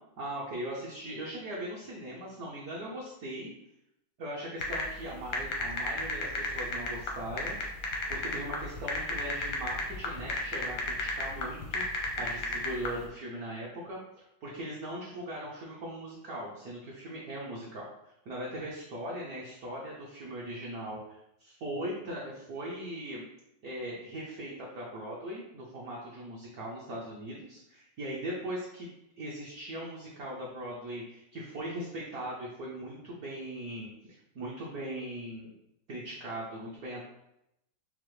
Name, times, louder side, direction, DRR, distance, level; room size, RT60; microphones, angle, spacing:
voice 1, 0.2-3.5 4.2-7.6 8.1-14.0 14.4-23.2 23.6-28.9 29.2-33.9 34.3-35.5 35.9-37.0, right 1 dB, 65° right, -5 dB, 1.0 m, -39 dB
sound 1, 4.6-13.0, left 3 dB, 70° left, 0.8 m, -33 dB
5.6 x 2.0 x 3.1 m, 0.83 s
omnidirectional pair, 2.4 m